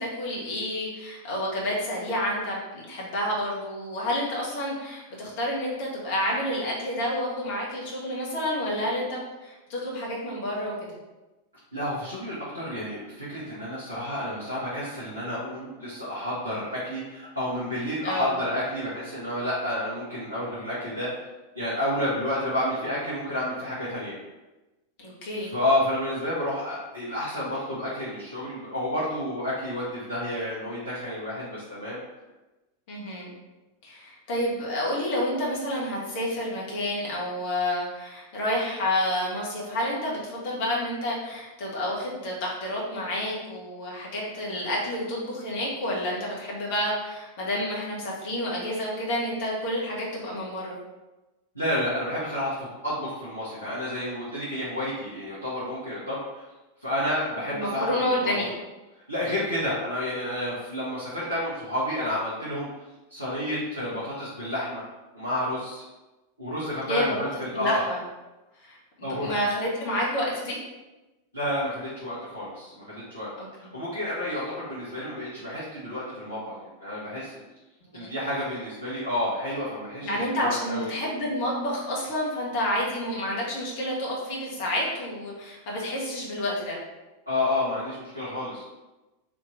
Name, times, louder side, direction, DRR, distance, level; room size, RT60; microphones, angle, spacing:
voice 1, 0.0-10.7 18.0-18.3 25.0-25.5 32.9-33.3 33.8-50.7 57.5-58.5 66.8-67.2 67.5-68.0 68.6-70.6 73.4-73.5 77.9-78.1 80.0-86.8, left 1 dB, 50° left, -4 dB, 1.4 m, -29 dB
voice 2, 11.7-21.2 21.5-24.1 25.5-32.0 51.5-56.5 56.8-58.3 59.1-62.7 63.1-64.8 65.1-65.8 66.4-67.8 69.0-69.3 71.3-73.3 73.6-77.4 77.9-80.9 87.3-88.6, left 1 dB, 85° left, -10 dB, 1.1 m, -30 dB
3.6 x 2.9 x 3.9 m, 1.1 s
figure-of-eight pair, 90°, 0 cm